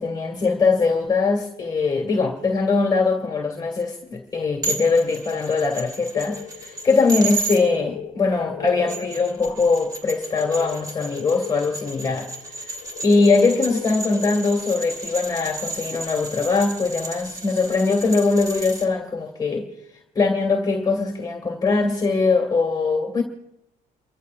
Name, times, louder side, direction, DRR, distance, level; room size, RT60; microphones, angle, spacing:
voice 1, 0.0-12.8 13.0-19.7 20.2-23.2, left 4 dB, 25° left, 1.7 m, -21 dB
sound 1, 4.6-7.6 8.7-18.9, right 2 dB, 20° right, 2.8 m, -33 dB
sound 2, 6.1-16.6 16.9-17.0 17.3-17.4 17.9-18.2, left 10 dB, 70° left, 0.8 m, -39 dB
29.5 x 14.5 x 2.4 m
cardioid pair, 110°, 17 cm